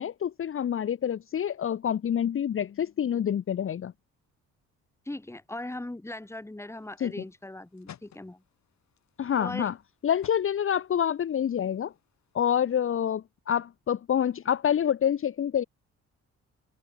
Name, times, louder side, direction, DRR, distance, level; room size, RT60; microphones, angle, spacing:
voice 1, 0.0-3.9 7.0-7.1 9.2-9.7 10.0-11.9 12.3-15.6, left 9 dB, 45° left, 0.9 m, -27 dB
voice 2, 5.1-8.4 9.4-9.7, left 1 dB, 10° left, 2.4 m, -39 dB
sound 1, 6.7-13.0, left 10 dB, 65° left, 7.6 m, -56 dB
cardioid pair, 90°, 30 cm